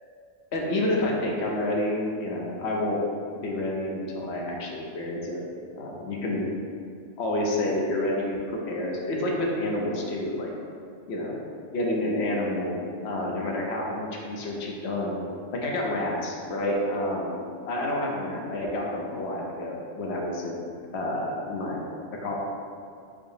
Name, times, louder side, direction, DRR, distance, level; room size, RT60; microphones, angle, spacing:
voice 1, 0.5-3.0 3.4-5.5 5.8-6.5 7.2-10.5 11.1-11.4 11.7-15.2 15.5-20.7 20.9-21.8 22.2-22.3, left 1 dB, 80° left, -2 dB, 1.0 m, -29 dB
5.4 x 2.0 x 4.8 m, 2.4 s
omnidirectional pair, 1.1 m